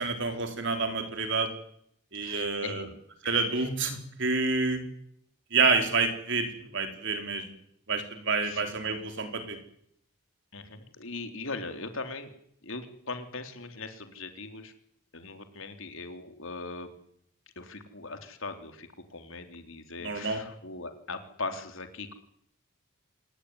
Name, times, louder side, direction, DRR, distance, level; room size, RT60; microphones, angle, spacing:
voice 1, 0.0-1.5 2.1-2.8 3.2-4.8 5.5-7.5 7.9-9.6 20.0-20.4, right 4 dB, 55° right, 6 dB, 4.6 m, -28 dB
voice 2, 2.1-2.9 8.4-8.6 10.5-12.3 12.6-14.7 15.1-16.9 17.6-22.1, left 3 dB, 65° left, 7 dB, 3.8 m, -40 dB
27.0 x 18.5 x 10.0 m, 0.71 s
head